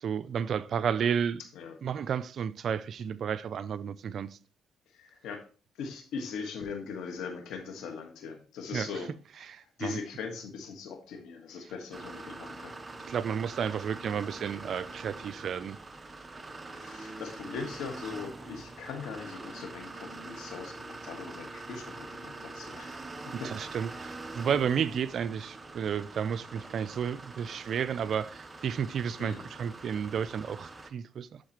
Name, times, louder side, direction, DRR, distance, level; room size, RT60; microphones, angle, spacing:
voice 1, 0.0-1.4 1.8-4.4 8.7-8.9 9.5-10.0 13.1-15.8 23.4-31.4, right 7 dB, 60° right, 0.4 m, -32 dB
voice 2, 4.9-5.5 5.8-9.1 9.6-12.8 16.6-23.5 27.5-27.8 29.2-29.5, left 5 dB, 85° left, 1.4 m, -40 dB
sound 1, 11.9-30.9, right 3 dB, 25° right, 0.8 m, -44 dB
11.5 x 4.0 x 3.0 m
cardioid pair, 90°, 0 cm